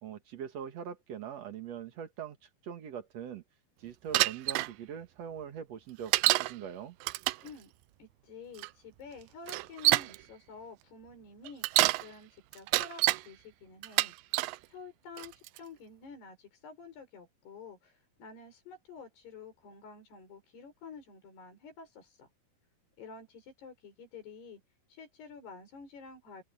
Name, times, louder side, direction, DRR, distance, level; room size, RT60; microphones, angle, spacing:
voice 1, 0.0-3.4 3.8-7.0, right 8 dB, 50° right, 2.3 m, -42 dB
Bicycle, 4.1-4.7 6.1-6.5 7.0-7.5 8.6-8.7 9.5-10.2 11.5-12.0 12.5-13.2 13.8-14.6 15.2-15.6, right 19 dB, 90° right, 2.0 m, -27 dB
voice 2, 7.4-7.7 8.0-14.1 14.7-22.3 23.0-24.6 24.9-26.4, left 4 dB, 85° left, 7.8 m, -50 dB
open air
omnidirectional pair, 4.5 m